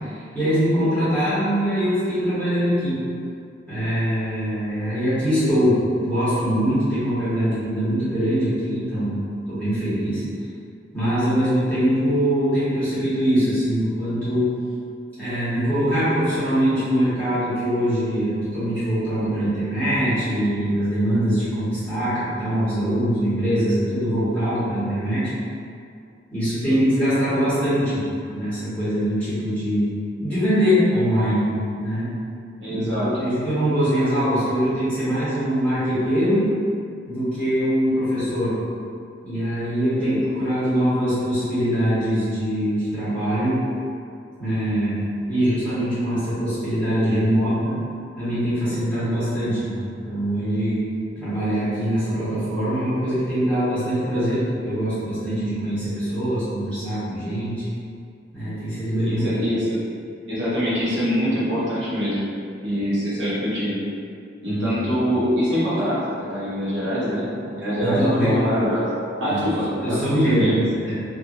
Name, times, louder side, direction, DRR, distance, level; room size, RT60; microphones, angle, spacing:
voice 1, 0.0-3.0 3.7-10.2 10.9-14.5 15.2-25.3 26.3-32.1 32.7-36.5 37.1-38.6 39.2-43.6 44.4-45.0 45.3-47.8 48.1-50.9 51.2-57.6 58.3-59.3 64.4-64.8 67.8-68.4 69.3-69.4 69.8-70.9, equal, 10° left, -15 dB, 1.3 m, -23 dB
voice 2, 32.6-33.1 40.0-40.2 59.0-59.8 60.3-62.3 62.6-63.8 64.4-68.9 69.2-70.5, equal, 75° right, -10 dB, 0.9 m, -24 dB
2.7 x 2.6 x 2.5 m, 2.4 s
head